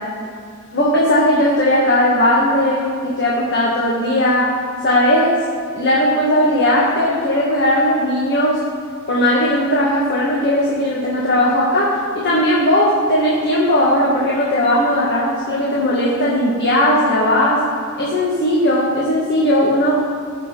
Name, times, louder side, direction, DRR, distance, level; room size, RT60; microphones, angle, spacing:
voice 1, 0.7-4.5 4.8-5.3 5.7-8.6 9.1-17.6 18.0-20.0, left 1 dB, 55° left, -6 dB, 2.0 m, -17 dB
19.5 x 7.1 x 4.1 m, 2.3 s
head